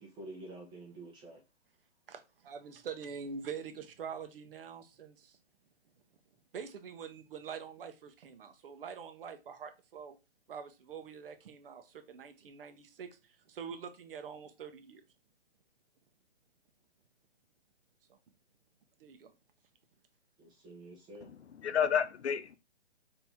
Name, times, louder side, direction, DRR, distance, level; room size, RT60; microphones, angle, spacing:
voice 1, 0.0-1.4 20.4-21.3, right 2 dB, 15° right, 0.9 m, -48 dB
voice 2, 2.1-5.4 6.5-10.1 10.5-13.2 13.5-15.0 19.0-19.3, right 6 dB, 50° right, 0.9 m, -45 dB
voice 3, 21.2-22.6, left 8 dB, 70° left, 0.7 m, -31 dB
4.5 x 2.9 x 3.5 m
hypercardioid pair, 140°, 35 cm